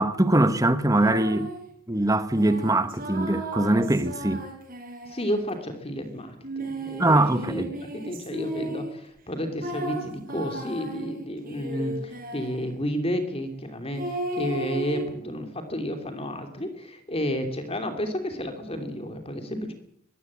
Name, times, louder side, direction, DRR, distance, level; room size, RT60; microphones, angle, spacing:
voice 1, 0.0-1.5 1.9-4.4 7.0-7.7, right 1 dB, 15° right, 1.2 m, -22 dB
sound 1, 1.0-1.6 2.3-5.6 6.4-9.0 9.6-12.7 13.9-15.1, right 1 dB, 40° right, 6.9 m, -35 dB
voice 2, 5.0-7.0 7.5-7.6 8.0-19.7, equal, 25° left, 2.8 m, -31 dB
21.5 x 16.0 x 8.7 m
head